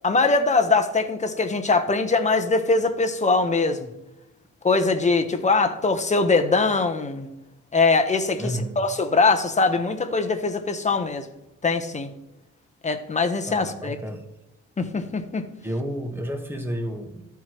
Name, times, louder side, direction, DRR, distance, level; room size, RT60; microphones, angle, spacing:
voice 1, 0.0-3.9 4.6-7.3 7.7-11.3 11.6-12.1 12.8-14.0 14.8-15.5, left 3 dB, 25° left, 7 dB, 0.9 m, -22 dB
voice 2, 8.4-8.8 13.5-14.2 15.6-17.2, equal, 5° right, 4 dB, 1.3 m, -31 dB
13.5 x 4.7 x 3.0 m, 0.94 s
cardioid pair, 90°, 30 cm